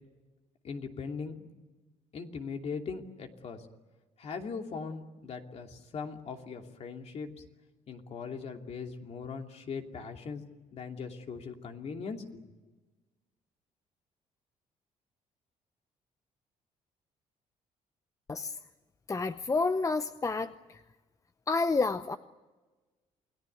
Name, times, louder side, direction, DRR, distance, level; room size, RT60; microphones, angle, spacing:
voice 1, 0.6-1.5 2.1-3.7 4.2-7.3 7.9-10.4 10.7-12.4, left 5 dB, 50° left, 3 dB, 2.7 m, -40 dB
voice 2, 19.1-20.5 21.5-22.2, left 3 dB, 25° left, 11 dB, 0.8 m, -29 dB
28.5 x 19.0 x 9.2 m, 1.2 s
cardioid pair, 105°, 13 cm